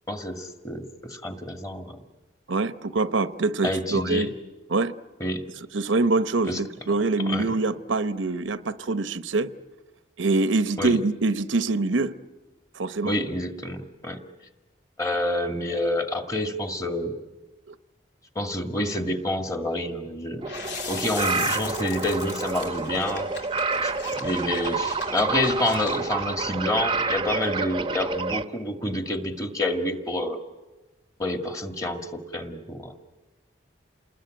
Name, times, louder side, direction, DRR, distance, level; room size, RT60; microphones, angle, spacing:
voice 1, 0.1-0.8 1.1-2.0 3.6-4.3 5.2-5.4 6.5-6.6 7.3-7.5 10.8-10.9 13.0-14.2 15.0-17.1 18.4-23.3 23.8-30.4 31.2-32.9, left 1 dB, 20° left, 1.9 m, -28 dB
voice 2, 2.5-4.3 4.7-4.9 5.7-9.5 10.2-12.2 12.7-13.1 17.7-17.8, right 3 dB, 80° right, 0.9 m, -24 dB
sound 1, 20.4-26.3, left 6 dB, 65° left, 3.4 m, -39 dB
sound 2, 20.4-28.4, right 4 dB, 25° right, 0.8 m, -29 dB
28.5 x 20.5 x 9.0 m
head